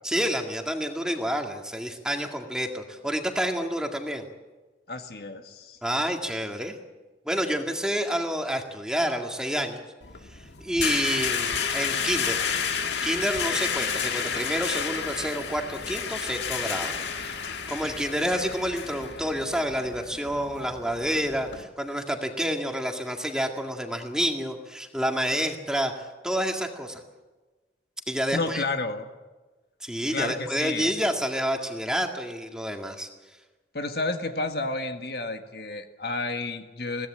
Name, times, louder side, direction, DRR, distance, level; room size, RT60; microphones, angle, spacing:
voice 1, 0.0-4.2 5.8-6.8 7.3-9.8 10.3-12.4 13.0-17.0 17.7-27.0 28.1-28.6 29.8-33.1, equal, 5° right, 3 dB, 1.9 m, -29 dB
voice 2, 4.9-5.8 28.3-29.1 30.1-30.9 33.7-37.1, left 3 dB, 65° left, 6 dB, 1.6 m, -31 dB
sound 1, 10.0-21.6, left 6 dB, 90° left, 1.7 m, -31 dB
22.0 x 17.0 x 8.7 m, 1.2 s
head